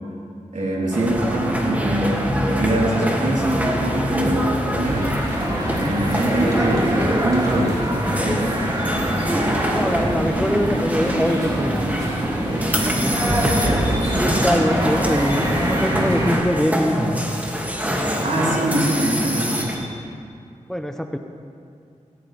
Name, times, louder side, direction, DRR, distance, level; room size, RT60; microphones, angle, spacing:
voice 1, 0.5-5.1 5.8-7.8 8.1-8.7 13.1-13.9 18.2-19.7, right 1 dB, 75° right, -5 dB, 3.9 m, -24 dB
sound 1, 0.9-19.9, equal, 10° right, 2.5 m, -24 dB
sound 2, 4.8-16.4, equal, 30° right, 4.5 m, -25 dB
voice 2, 9.7-12.1 12.4-13.4 14.1-17.1 20.7-21.2, equal, 5° left, 5 dB, 1.0 m, -24 dB
17.0 x 17.0 x 3.6 m, 2.3 s
cardioid pair, 50°, 13 cm